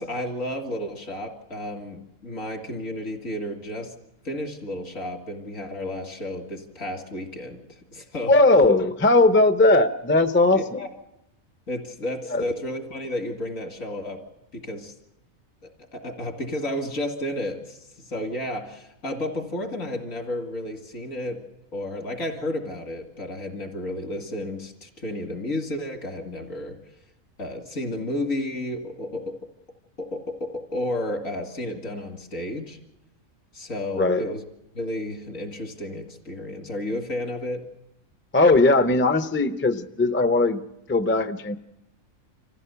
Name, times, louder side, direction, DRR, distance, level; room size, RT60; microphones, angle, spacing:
voice 1, 0.0-3.9 4.2-8.3 10.5-10.9 11.7-14.2 14.5-14.9 15.9-21.4 21.7-26.8 27.4-29.2 30.0-32.8 33.5-34.4 34.7-37.6, left 1 dB, 75° left, 4 dB, 2.5 m, -32 dB
voice 2, 8.3-10.8 12.3-12.5 34.0-34.3 38.3-40.6 40.9-41.6, left 2 dB, 15° left, 10 dB, 0.4 m, -19 dB
25.0 x 15.0 x 6.9 m, 0.89 s
omnidirectional pair, 1.4 m